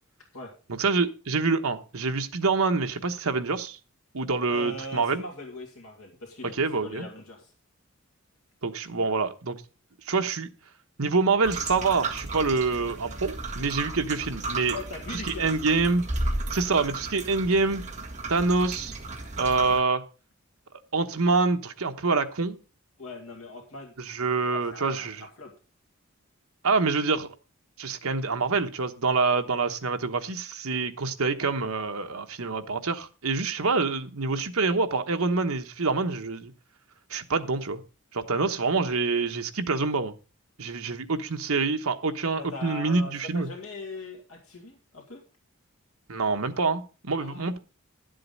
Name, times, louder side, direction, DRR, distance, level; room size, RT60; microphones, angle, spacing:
voice 1, 0.8-3.8 4.1-5.2 6.6-7.1 8.6-9.6 10.1-10.5 11.0-14.7 15.4-16.0 16.5-17.8 18.3-18.9 19.4-20.0 20.9-22.5 24.1-25.2 26.6-27.3 27.8-36.5 37.1-37.8 38.1-40.1 40.6-43.5 46.1-47.6, right 4 dB, 80° right, 1.1 m, -26 dB
voice 2, 4.5-6.5 6.8-7.5 14.7-15.6 23.0-25.5 42.4-45.2 47.2-47.5, left 2 dB, 80° left, 2.2 m, -41 dB
sound 1, 11.4-19.8, right 2 dB, 35° right, 1.9 m, -34 dB
11.5 x 7.7 x 5.4 m
head